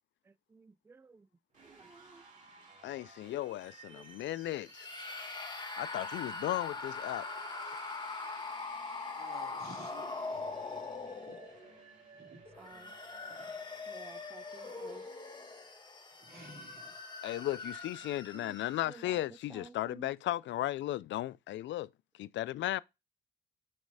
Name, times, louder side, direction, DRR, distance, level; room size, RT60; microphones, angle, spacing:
voice 1, 0.5-1.3 1.6-2.2 3.9-4.1 12.6-12.9 13.9-15.1 18.3-18.6 18.9-19.2 19.5-20.1, right 4 dB, 10° right, 0.3 m, -53 dB
sound 1, 1.5-15.7, right 3 dB, 40° right, 2.9 m, -57 dB
voice 2, 2.8-4.9 5.8-7.3 17.2-21.9 22.2-22.8, left 14 dB, 70° left, 0.4 m, -35 dB
sound 2, 4.7-11.7 12.4-19.0, left 3 dB, 25° left, 1.6 m, -42 dB
voice 3, 9.2-10.5 11.3-11.4 12.2-12.7 13.4-13.5 15.4-15.6 16.2-16.9, right 2 dB, 55° right, 3.6 m, -54 dB
7.5 x 3.2 x 4.8 m
cardioid pair, 90°, 20 cm